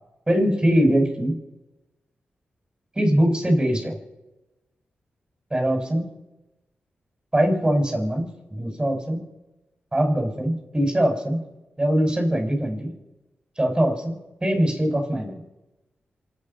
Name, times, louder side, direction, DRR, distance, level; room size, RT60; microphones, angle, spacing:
voice 1, 0.3-1.3 3.0-3.9 5.5-6.0 7.3-9.2 9.9-11.4 11.8-12.9 13.6-15.4, right 1 dB, 20° right, 3 dB, 6.2 m, -22 dB
27.5 x 9.4 x 5.6 m, 1.0 s
cardioid pair, 50°, 4 cm